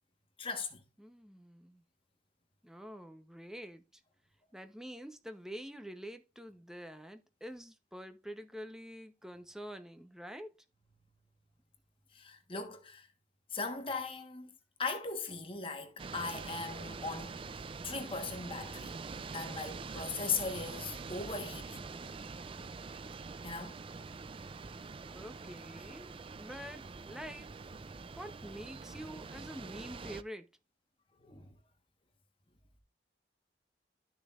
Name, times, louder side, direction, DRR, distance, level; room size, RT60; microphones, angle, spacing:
voice 1, 0.4-0.8 12.1-13.1 13.5-14.5 14.8-17.4 17.8-18.9 19.3-21.9 23.4-23.8 31.2-31.5, left 4 dB, 30° left, 1.3 m, -39 dB
voice 2, 1.0-1.8 2.6-4.0 4.5-10.5 25.1-27.5 28.1-30.5, equal, 5° right, 0.8 m, -47 dB
sound 1, 16.0-30.2, right 4 dB, 30° right, 0.4 m, -45 dB
12.5 x 6.4 x 2.5 m
head